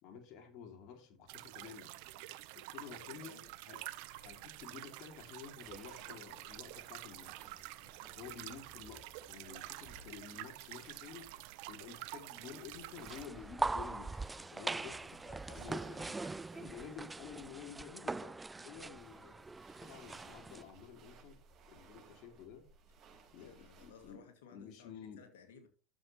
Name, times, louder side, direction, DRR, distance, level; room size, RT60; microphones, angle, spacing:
voice 1, 0.0-1.9 2.5-3.8 4.2-7.5 8.2-11.3 11.7-15.2 15.5-16.0 16.6-19.5 19.8-21.4 21.7-22.7 23.3-24.3 24.5-25.3, left 7 dB, 55° left, 5 dB, 2.6 m, -51 dB
sound 1, 1.3-13.3, right 17 dB, 65° right, 0.8 m, -49 dB
voice 2, 2.8-3.5 7.8-8.1 15.2-16.7 18.7-18.8 23.4-25.7, left 6 dB, 80° left, 7 dB, 2.2 m, -59 dB
sound 2, 5.6-24.2, right 4 dB, 45° right, 4.2 m, -61 dB
sound 3, 13.0-20.6, right 3 dB, 15° right, 0.3 m, -41 dB
12.0 x 7.2 x 3.1 m, 0.36 s
hypercardioid pair, 90°, 0 cm